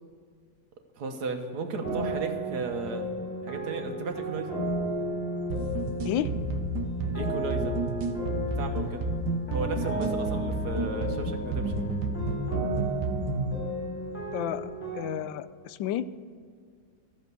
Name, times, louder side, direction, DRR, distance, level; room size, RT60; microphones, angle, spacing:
voice 1, 1.0-3.0 3.4-4.6 7.1-7.8 8.4-9.0 9.5-11.7, right 4 dB, 60° right, 5 dB, 1.6 m, -35 dB
sound 1, 1.8-15.0, right 1 dB, 5° left, 3.6 m, -34 dB
sound 2, 5.5-13.5, right 2 dB, 80° right, 1.6 m, -31 dB
voice 2, 14.3-14.6 14.9-16.0, left 12 dB, 90° left, 15 dB, 1.3 m, -31 dB
13.5 x 6.9 x 6.8 m, 2.1 s
omnidirectional pair, 2.0 m